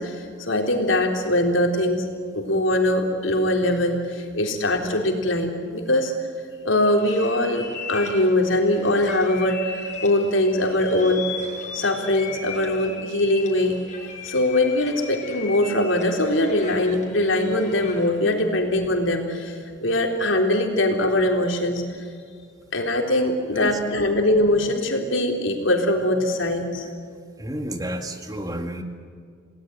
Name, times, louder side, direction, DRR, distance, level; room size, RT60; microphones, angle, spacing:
voice 1, 0.0-2.1 2.3-6.1 6.6-11.2 11.7-13.8 14.2-21.8 22.7-26.9, left 1 dB, 90° left, 3 dB, 3.9 m, -22 dB
sound 1, 7.0-18.2, left 5 dB, 40° left, 5.0 m, -38 dB
voice 2, 27.4-28.8, right 1 dB, 20° right, 6 dB, 2.1 m, -31 dB
29.0 x 18.5 x 9.5 m, 2.2 s
head